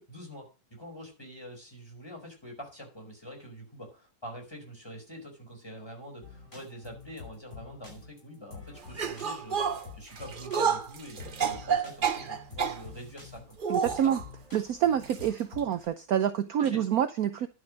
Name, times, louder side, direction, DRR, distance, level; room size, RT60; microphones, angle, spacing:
voice 1, 0.0-14.1 16.6-16.8, equal, 10° left, 4.9 m, -45 dB
sound 1, 6.2-15.8, left 4 dB, 35° left, 6.5 m, -48 dB
sound 2, 8.9-12.8 13.6-14.2 15.0-15.3 15.6-15.7 16.6-16.7, right 7 dB, 85° right, 0.4 m, -30 dB
voice 2, 13.7-14.2 14.5-17.5, right 10 dB, 70° right, 0.9 m, -27 dB
11.5 x 7.0 x 6.3 m
omnidirectional pair, 2.3 m